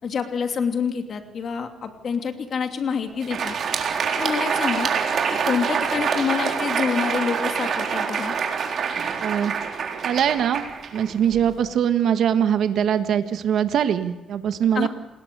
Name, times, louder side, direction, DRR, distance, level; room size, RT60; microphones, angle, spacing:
voice 1, 0.0-3.5 4.2-4.9 5.5-8.3 14.7-14.9, left 6 dB, 55° left, 5 dB, 2.8 m, -27 dB
Crowd, 3.1-11.6, right 6 dB, 60° right, 4.0 m, -26 dB
voice 2, 9.2-9.5 10.0-10.6 10.9-14.9, right 9 dB, 75° right, 8 dB, 1.6 m, -22 dB
28.5 x 20.0 x 6.9 m, 1.0 s
cardioid pair, 100°, 0 cm